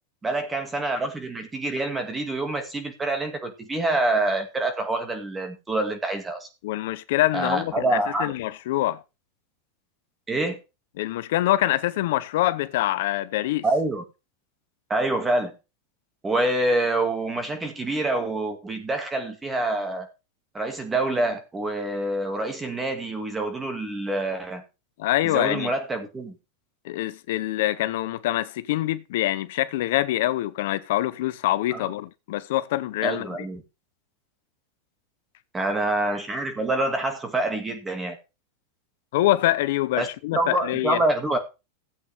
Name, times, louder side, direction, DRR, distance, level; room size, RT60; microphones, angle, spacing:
voice 1, 0.2-6.5 7.3-8.3 10.3-10.6 13.6-14.0 14.9-15.5 16.2-20.1 20.5-24.6 25.2-26.4 31.7-31.9 33.0-33.6 35.5-38.2 40.0-40.1 40.3-41.4, right 2 dB, 10° right, 2.2 m, -26 dB
voice 2, 6.6-7.9 8.2-9.0 11.0-13.6 25.0-25.7 26.8-33.3 39.1-41.0, left 15 dB, 65° left, 0.7 m, -25 dB
15.5 x 8.1 x 3.5 m
supercardioid pair, 155°, 0 cm